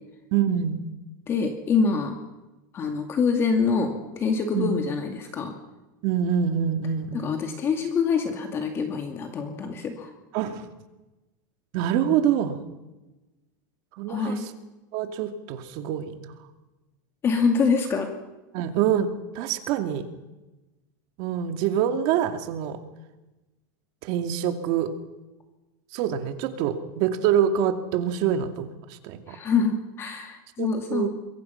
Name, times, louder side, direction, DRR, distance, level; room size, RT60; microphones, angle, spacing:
voice 1, 0.3-0.8 4.5-4.7 6.0-7.5 10.3-10.7 11.7-12.6 13.9-14.4 14.9-16.3 18.5-19.1 19.3-20.0 21.2-22.8 24.0-24.9 25.9-29.4 30.6-31.1, right 9 dB, 45° right, 7 dB, 2.4 m, -25 dB
voice 2, 1.3-2.2 2.7-5.5 7.1-10.1 14.1-14.5 17.2-18.1 29.3-31.1, left 5 dB, 25° left, 4 dB, 2.3 m, -25 dB
27.0 x 22.5 x 5.8 m, 1.1 s
supercardioid pair, 160°, 11 cm